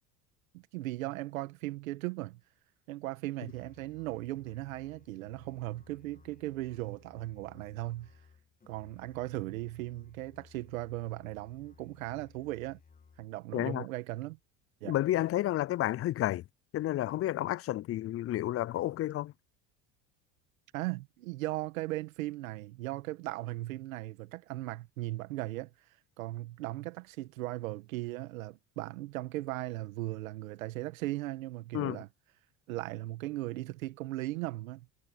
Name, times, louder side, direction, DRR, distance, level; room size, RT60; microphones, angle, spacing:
voice 1, 0.5-2.4 2.9-8.1 8.7-12.8 13.2-14.4 14.8-15.0 20.7-25.7 26.2-32.1 32.7-34.9, right 17 dB, 90° right, 1.7 m, -37 dB
Musical instrument, 3.5-13.4, left 5 dB, 20° left, 1.8 m, -60 dB
voice 2, 13.5-13.9 14.8-16.4 16.7-19.3 31.7-32.0, left 14 dB, 35° left, 0.5 m, -31 dB
supercardioid pair, 90°, 39 cm